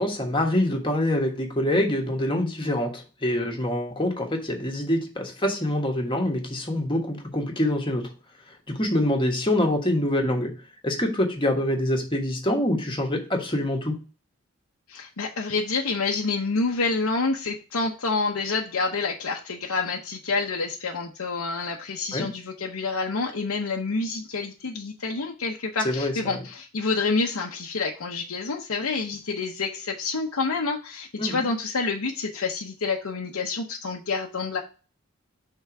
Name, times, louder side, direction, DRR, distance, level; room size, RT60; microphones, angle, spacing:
voice 1, 0.0-8.1 8.7-10.5 10.8-14.0 22.1-22.3 25.8-26.4 31.2-31.4, left 1 dB, 25° left, 2 dB, 1.4 m, -25 dB
voice 2, 14.9-34.6, left 4 dB, 90° left, 0 dB, 0.8 m, -28 dB
5.8 x 3.8 x 5.9 m, 0.35 s
head